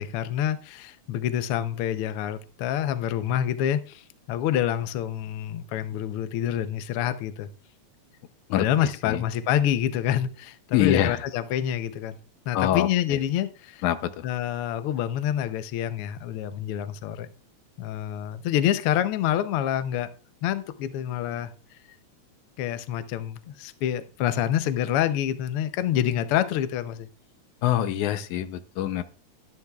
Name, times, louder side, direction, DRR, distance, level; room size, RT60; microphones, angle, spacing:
voice 1, 0.0-4.0 4.3-7.5 8.6-12.2 12.5-13.8 14.2-17.3 17.8-20.1 20.4-21.5 22.6-27.1, left 11 dB, 70° left, 1.4 m, -27 dB
voice 2, 8.5-9.2 10.7-11.2 12.5-13.2 13.8-14.3 27.6-29.0, left 11 dB, 90° left, 2.2 m, -25 dB
12.5 x 11.5 x 2.4 m
omnidirectional pair, 3.3 m